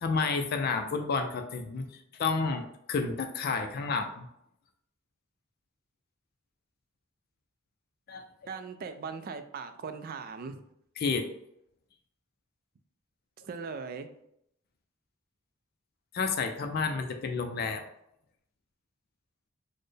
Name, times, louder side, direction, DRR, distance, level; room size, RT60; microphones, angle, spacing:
voice 1, 0.0-4.3 8.1-8.5 11.0-11.3 16.1-17.8, left 4 dB, 50° left, 5 dB, 0.4 m, -31 dB
voice 2, 8.5-10.6 13.4-14.1, right 5 dB, 45° right, 9 dB, 0.3 m, -39 dB
4.2 x 2.1 x 3.2 m, 0.76 s
head